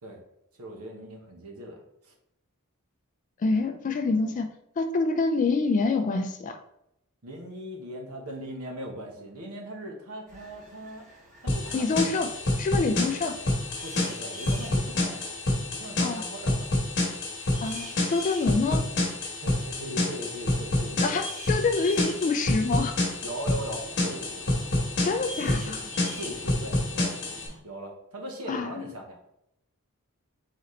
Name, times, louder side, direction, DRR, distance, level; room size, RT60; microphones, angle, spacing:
voice 1, 0.6-2.1 7.2-11.1 11.4-12.0 13.8-16.7 19.4-21.2 23.2-24.6 25.4-25.7 26.2-27.2 27.6-29.2, right 1 dB, 80° right, 2 dB, 1.0 m, -39 dB
voice 2, 3.4-4.5 4.8-6.6 11.7-12.3 12.6-13.4 16.0-16.2 17.6-18.8 21.0-23.0 25.0-25.8 28.5-28.9, left 3 dB, 35° left, 7 dB, 0.3 m, -26 dB
sound 1, 10.3-27.6, equal, 35° right, 1.4 m, -47 dB
sound 2, 11.5-27.5, left 1 dB, 55° left, 1.1 m, -28 dB
4.0 x 3.9 x 3.1 m, 0.80 s
head